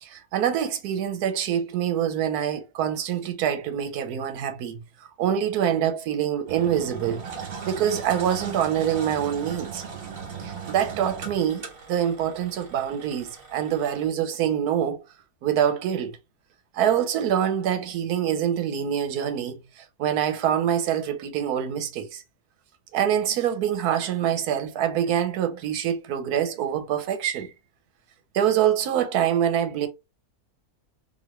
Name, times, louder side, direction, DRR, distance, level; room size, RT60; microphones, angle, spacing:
voice 1, 0.0-4.8 5.2-7.2 7.6-9.8 10.4-15.0 15.4-16.2 16.7-22.2 22.9-27.5 28.3-29.9, right 9 dB, 85° right, 1.2 m, -25 dB
Engine, 6.5-14.0, right 6 dB, 60° right, 1.4 m, -38 dB
3.0 x 2.7 x 2.9 m
omnidirectional pair, 1.6 m